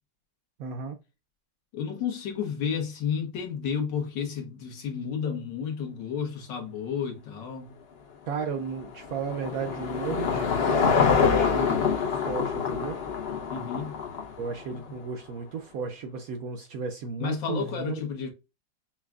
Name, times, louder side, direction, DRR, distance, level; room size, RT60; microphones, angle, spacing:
voice 1, 0.6-1.0 8.3-13.0 14.4-18.0, right 5 dB, 70° right, 0.8 m, -34 dB
voice 2, 1.7-7.8 13.5-13.9 14.7-14.8 17.2-18.3, left 7 dB, 75° left, 1.7 m, -31 dB
Car passing by / Engine, 8.4-14.8, left 6 dB, 55° left, 0.7 m, -26 dB
5.7 x 2.3 x 2.3 m
omnidirectional pair, 2.0 m